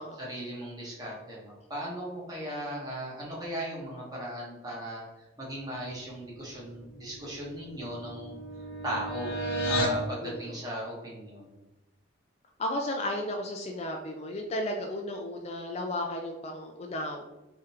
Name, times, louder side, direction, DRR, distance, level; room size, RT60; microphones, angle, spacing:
voice 1, 0.2-8.4 8.8-9.3 9.6-11.6, right 1 dB, 20° right, -5 dB, 1.1 m, -37 dB
sound 1, 6.8-10.0, right 1 dB, 85° left, 0.8 m, -33 dB
voice 2, 10.2-10.6 12.6-17.2, left 1 dB, 35° left, 2 dB, 0.3 m, -34 dB
3.6 x 3.3 x 2.9 m, 1.0 s
head